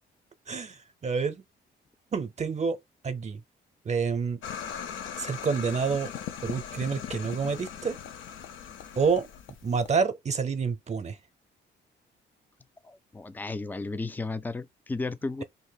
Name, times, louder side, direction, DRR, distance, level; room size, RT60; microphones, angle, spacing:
voice 1, 0.5-1.4 2.1-2.8 3.0-3.4 3.8-4.4 5.2-6.1 6.4-8.0 9.0-9.3 9.6-11.2, right 5 dB, 35° right, 0.7 m, -28 dB
sound 1, 4.4-10.0, left 8 dB, 80° left, 0.6 m, -39 dB
voice 2, 12.8-15.4, left 3 dB, 10° left, 0.3 m, -34 dB
2.6 x 2.5 x 3.9 m
cardioid pair, 90°, 20 cm